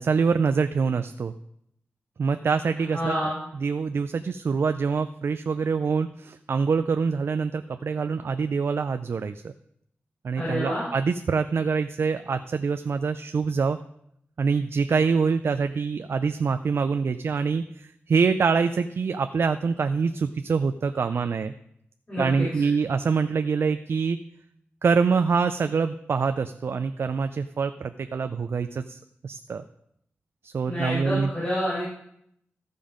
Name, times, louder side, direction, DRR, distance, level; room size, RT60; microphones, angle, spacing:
voice 1, 0.0-1.3 2.2-9.5 10.2-13.8 14.4-21.5 22.2-24.2 24.8-29.6 30.4-31.3, right 5 dB, 65° right, 9 dB, 0.4 m, -25 dB
voice 2, 2.9-3.4 10.4-10.8 22.1-22.6 30.7-31.8, equal, 35° left, -8 dB, 4.8 m, -28 dB
14.5 x 5.4 x 5.1 m, 0.73 s
wide cardioid pair, 110°, 4 cm